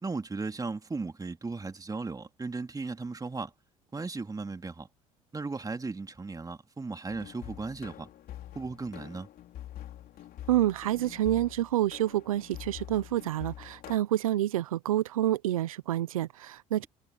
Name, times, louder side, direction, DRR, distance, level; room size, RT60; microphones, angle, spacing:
voice 1, 0.0-3.5 3.9-4.9 5.3-8.1 8.5-9.3, right 3 dB, 20° right, 2.9 m, -36 dB
sound 1, 7.1-14.0, left 12 dB, 60° left, 3.5 m, -45 dB
voice 2, 10.5-16.8, right 13 dB, 90° right, 0.8 m, -28 dB
hypercardioid pair, 65°, 17 cm